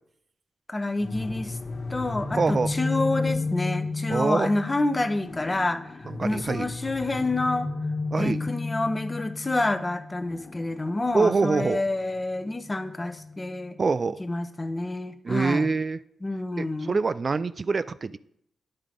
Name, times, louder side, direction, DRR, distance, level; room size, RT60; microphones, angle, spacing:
voice 1, 0.7-1.6 1.9-7.7 8.2-13.8 14.2-15.7 16.2-17.0, left 2 dB, 25° left, 9 dB, 0.7 m, -28 dB
sound 1, 1.0-13.8, left 3 dB, 50° left, 1.3 m, -33 dB
voice 2, 2.4-2.7 4.1-4.5 6.1-6.7 8.1-8.4 11.1-11.8 13.8-14.2 15.2-16.0 16.6-18.2, right 4 dB, 45° right, 15 dB, 0.3 m, -25 dB
9.6 x 3.7 x 5.1 m, 0.74 s
cardioid pair, 65°, 0 cm